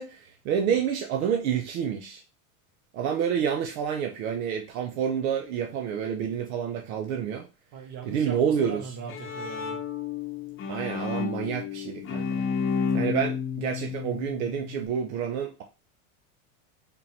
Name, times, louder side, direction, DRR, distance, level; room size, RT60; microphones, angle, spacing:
voice 1, 0.0-2.2 2.9-7.5 8.1-8.8 10.7-12.4 12.9-15.6, right 8 dB, 75° right, 0.9 m, -28 dB
voice 2, 7.7-9.8, right 6 dB, 45° right, 1.4 m, -39 dB
Bowed string instrument, 8.8-14.9, left 6 dB, 30° left, 0.8 m, -31 dB
3.8 x 3.7 x 2.8 m
supercardioid pair, 120°, 42 cm